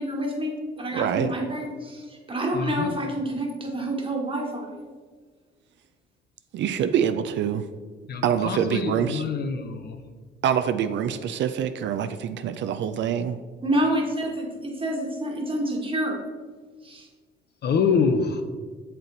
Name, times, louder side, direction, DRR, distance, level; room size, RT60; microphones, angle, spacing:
voice 1, 0.0-4.8 13.6-16.2 16.8-17.1, right 1 dB, 25° right, 0 dB, 1.3 m, -28 dB
voice 2, 0.9-1.3 6.5-7.7 8.2-9.2 10.4-13.4, right 8 dB, 65° right, 10 dB, 0.4 m, -25 dB
voice 3, 2.5-2.9 8.1-10.0 17.6-18.4, left 5 dB, 55° left, 7 dB, 0.7 m, -25 dB
6.7 x 4.4 x 3.9 m, 1.5 s
cardioid pair, 90°, 20 cm